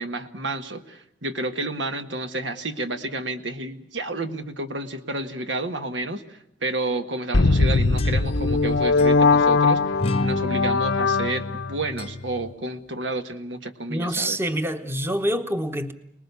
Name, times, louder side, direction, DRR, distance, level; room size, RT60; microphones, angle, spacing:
voice 1, 0.0-14.4, right 2 dB, 85° right, 1.6 m, -30 dB
sound 1, 7.3-11.8, left 3 dB, 90° left, 0.9 m, -20 dB
sound 2, 7.5-8.6 9.0-9.1 10.0-12.5, left 2 dB, 35° left, 0.8 m, -32 dB
voice 2, 13.9-15.9, equal, 15° right, 1.0 m, -26 dB
28.0 x 20.0 x 6.9 m
head